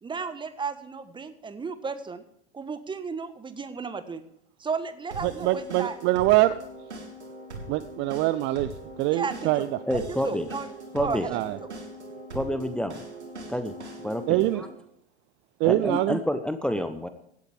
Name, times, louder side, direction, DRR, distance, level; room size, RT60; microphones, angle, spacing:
voice 1, 0.0-2.2 2.5-4.2 4.6-6.0 9.1-10.7 10.9-11.5, right 5 dB, 15° right, 11 dB, 1.3 m, -34 dB
sound 1, 5.1-14.7, right 2 dB, 80° right, 3.0 m, -41 dB
voice 2, 5.2-6.5 7.7-8.7 9.0-9.7 11.3-11.6 14.3-14.6 15.6-16.2, right 17 dB, 35° right, 15 dB, 0.6 m, -24 dB
voice 3, 9.9-10.5 10.9-11.3 12.3-13.0 13.5-13.7 14.0-14.7 15.6-17.1, left 1 dB, 5° left, 10 dB, 0.8 m, -28 dB
17.0 x 12.0 x 3.5 m, 0.73 s
figure-of-eight pair, 85°, 34 cm